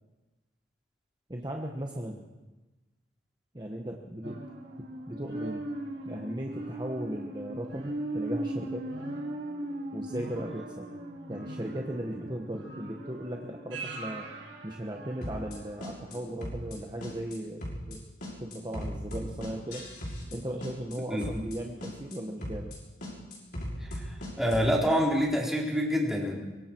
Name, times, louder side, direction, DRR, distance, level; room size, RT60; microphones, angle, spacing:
voice 1, 1.3-2.2 3.5-4.5 5.1-5.7 6.0-8.9 9.9-10.9 11.3-14.3 14.6-18.0 18.4-19.8 20.3-22.7, right 1 dB, 25° right, 1 dB, 1.3 m, -37 dB
sound 1, 4.2-15.7 16.1-16.2, right 1 dB, 85° right, 6.0 m, -38 dB
sound 2, 15.2-15.6 15.8-16.2 16.4-16.8 17.0-17.4 17.6-18.0 18.2-20.4 20.6-21.0 21.2-21.6 21.8-22.2 22.4-22.8 23.0-24.7, equal, 55° left, 6.6 m, -37 dB
voice 2, 24.4-26.3, equal, ahead, -3 dB, 3.9 m, -26 dB
24.5 x 23.5 x 4.6 m, 1.2 s
head